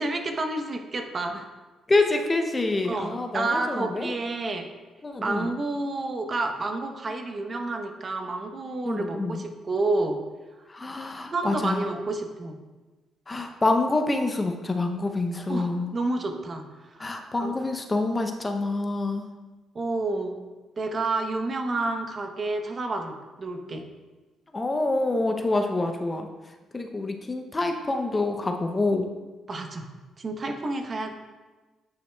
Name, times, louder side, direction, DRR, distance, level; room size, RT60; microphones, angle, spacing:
voice 1, 0.0-1.5 2.8-4.6 5.2-10.2 11.3-12.6 15.5-17.1 17.4-17.6 19.7-20.4 20.8-23.8 29.5-29.9 30.2-31.1, right 2 dB, 40° right, 5 dB, 0.7 m, -29 dB
voice 2, 1.9-4.1 5.0-5.5 8.8-9.4 10.7-11.8 13.3-15.9 17.0-19.3 24.5-26.3 26.7-29.0, left 2 dB, 25° left, 5 dB, 0.5 m, -26 dB
9.2 x 5.6 x 2.2 m, 1.2 s
cardioid pair, 90°, 0 cm